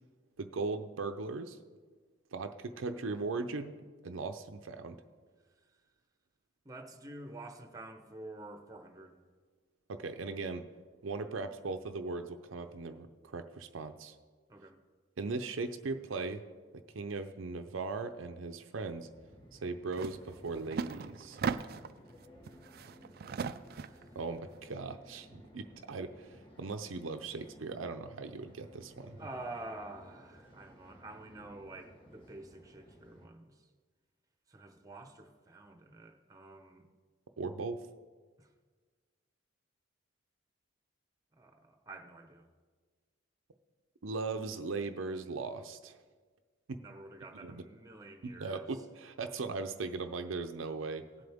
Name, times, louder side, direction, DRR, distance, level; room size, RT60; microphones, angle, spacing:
voice 1, 0.4-1.6 2.3-3.7 4.0-5.0 9.9-10.6 11.0-14.2 15.2-16.4 16.9-19.1 19.5-21.4 24.1-29.2 37.4-37.8 44.0-46.0 47.4-47.6 48.2-51.1, right 3 dB, 90° right, 8 dB, 0.6 m, -38 dB
voice 2, 6.6-9.2 14.5-14.8 23.8-24.2 29.2-33.6 34.5-36.8 38.4-38.5 41.3-42.5 46.8-48.8 51.2-51.3, right 2 dB, 20° right, 5 dB, 1.0 m, -48 dB
sound 1, 19.0-33.3, equal, 25° left, 1.5 m, -57 dB
sound 2, 19.9-20.2 20.5-22.0 22.5-24.0, right 5 dB, 50° right, 0.4 m, -37 dB
18.0 x 7.7 x 3.6 m, 1.5 s
head